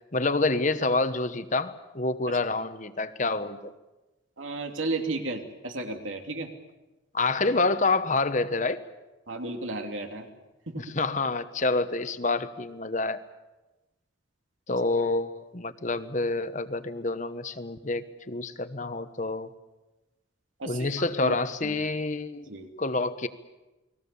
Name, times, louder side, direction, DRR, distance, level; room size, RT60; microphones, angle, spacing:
voice 1, 0.1-3.7 7.1-8.8 10.8-13.2 14.7-19.5 20.6-22.5 22.8-23.3, left 3 dB, 40° left, 12 dB, 1.1 m, -27 dB
voice 2, 4.4-6.5 9.3-10.3 10.7-10.9 20.6-21.8 22.5-22.7, right 2 dB, 80° right, 4 dB, 3.0 m, -34 dB
29.5 x 20.5 x 7.0 m, 1.1 s
head